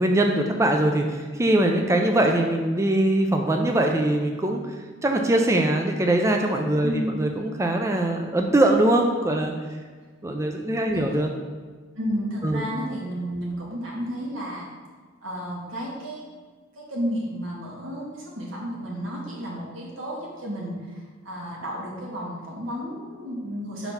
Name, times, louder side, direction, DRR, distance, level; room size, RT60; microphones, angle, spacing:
voice 1, 0.0-4.6 5.0-9.5 10.2-11.3 12.4-12.7, right 1 dB, 15° right, 3 dB, 0.4 m, -22 dB
voice 2, 6.8-7.3 10.9-11.1 12.0-14.7 15.2-16.2 16.8-23.9, equal, 85° right, -4 dB, 1.8 m, -32 dB
5.3 x 4.0 x 5.8 m, 1.4 s
head